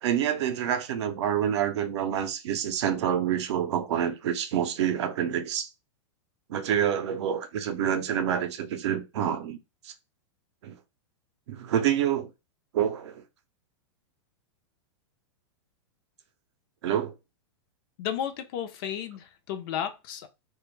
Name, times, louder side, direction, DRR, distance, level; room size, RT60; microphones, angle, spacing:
voice 1, 0.0-5.7 6.5-9.6 9.8-9.9 10.6-10.8 11.5-12.3 12.7-13.2 16.8-17.1, right 9 dB, 70° right, 0.5 m, -27 dB
voice 2, 18.0-20.3, left 9 dB, 50° left, 0.5 m, -33 dB
2.2 x 2.1 x 3.0 m
hypercardioid pair, 140°, 15 cm